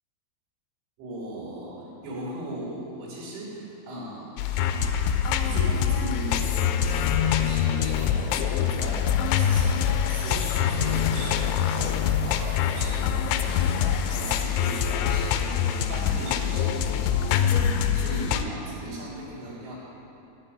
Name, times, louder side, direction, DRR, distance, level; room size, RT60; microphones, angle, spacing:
voice 1, 1.0-19.8, right 1 dB, 80° right, -6 dB, 5.6 m, -38 dB
sound 1, 4.4-18.4, left 8 dB, 85° left, 2.9 m, -24 dB
14.5 x 5.2 x 8.8 m, 3.0 s
omnidirectional pair, 5.4 m